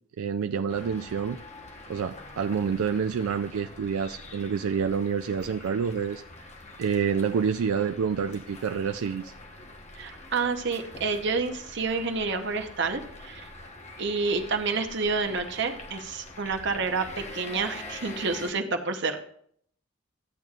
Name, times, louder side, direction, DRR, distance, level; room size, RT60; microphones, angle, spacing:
voice 1, 0.2-1.4 1.9-6.5 6.8-9.3, right 6 dB, 80° right, 8 dB, 0.4 m, -28 dB
sound 1, 0.7-18.5, left 2 dB, 35° left, 1.0 m, -45 dB
voice 2, 9.9-13.5 14.0-19.2, right 4 dB, 55° right, 5 dB, 0.9 m, -29 dB
13.5 x 9.0 x 2.4 m, 0.64 s
head